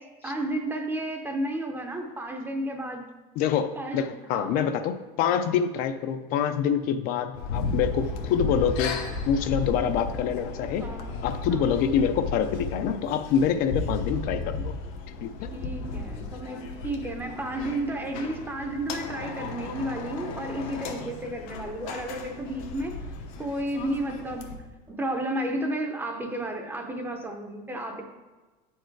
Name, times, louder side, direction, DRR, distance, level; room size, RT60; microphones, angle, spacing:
voice 1, 0.0-3.1 3.8-4.6 10.8-11.2 11.5-11.8 15.5-23.0 23.4-24.6 24.9-28.0, right 1 dB, 10° right, 4 dB, 0.6 m, -32 dB
voice 2, 3.4-10.9 11.2-14.7 15.2-15.5, left 8 dB, 55° left, 9 dB, 0.5 m, -26 dB
sound 1, 7.3-24.6, left 3 dB, 80° left, 1.0 m, -34 dB
8.8 x 4.5 x 4.6 m, 1.3 s
cardioid pair, 165°, 18 cm